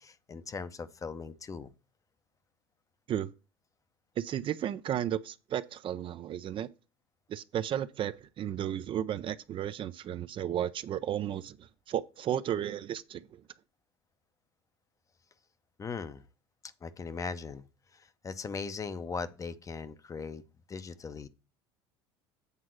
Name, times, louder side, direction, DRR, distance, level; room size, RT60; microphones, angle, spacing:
voice 1, 0.0-1.7 15.8-16.2 16.8-17.6 17.9-20.4 20.7-21.3, left 5 dB, 25° left, 0.7 m, -39 dB
voice 2, 4.2-6.7 7.3-11.6 11.9-13.2, right 10 dB, 45° right, 0.5 m, -33 dB
8.2 x 3.6 x 6.3 m
hypercardioid pair, 80°, 13 cm